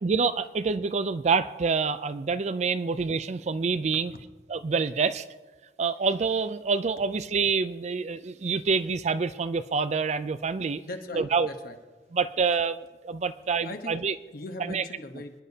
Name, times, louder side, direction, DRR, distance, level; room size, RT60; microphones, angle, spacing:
voice 1, 0.0-4.1 4.5-5.2 5.8-10.8 11.2-11.5 12.1-14.1 14.7-14.8, right 5 dB, 40° right, 14 dB, 0.4 m, -27 dB
voice 2, 10.8-11.8 13.6-14.0 14.3-15.4, left 2 dB, 55° left, 5 dB, 1.1 m, -40 dB
27.0 x 10.0 x 2.8 m, 1.3 s
head